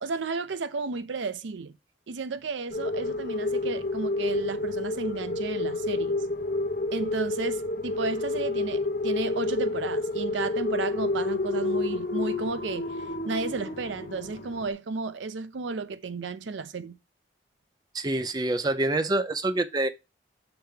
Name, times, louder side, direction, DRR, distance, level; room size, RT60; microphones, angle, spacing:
voice 1, 0.0-1.7 2.1-6.2 6.9-17.0, right 4 dB, 75° right, 0.5 m, -33 dB
sound 1, 2.7-14.7, left 2 dB, 50° left, 0.8 m, -29 dB
voice 2, 17.9-19.9, right 2 dB, 20° right, 0.4 m, -26 dB
6.0 x 3.4 x 4.9 m
head